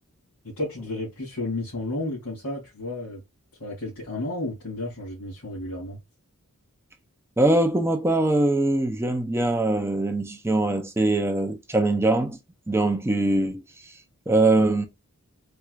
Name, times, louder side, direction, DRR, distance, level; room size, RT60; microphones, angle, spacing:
voice 1, 0.4-3.2 3.6-6.0, left 2 dB, 90° left, 2.3 m, -32 dB
voice 2, 7.4-12.4 12.7-13.6 14.3-14.8, right 2 dB, 10° right, 0.5 m, -22 dB
4.4 x 2.4 x 2.3 m
head